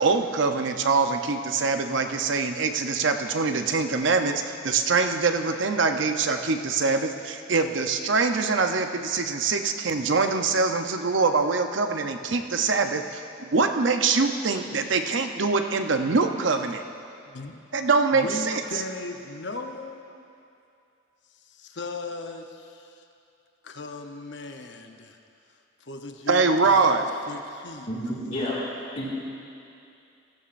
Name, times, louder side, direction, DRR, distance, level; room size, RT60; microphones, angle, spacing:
voice 1, 0.0-16.8 17.7-18.6 26.3-27.0, right 4 dB, 65° right, 6 dB, 0.7 m, -24 dB
voice 2, 17.3-17.6 18.1-20.2 21.5-23.0 23.6-25.2 25.8-27.9, left 3 dB, 60° left, 5 dB, 0.8 m, -37 dB
voice 3, 27.9-28.6 29.0-29.1, left 1 dB, 40° left, -9 dB, 2.0 m, -30 dB
16.0 x 15.5 x 2.5 m, 2.6 s
head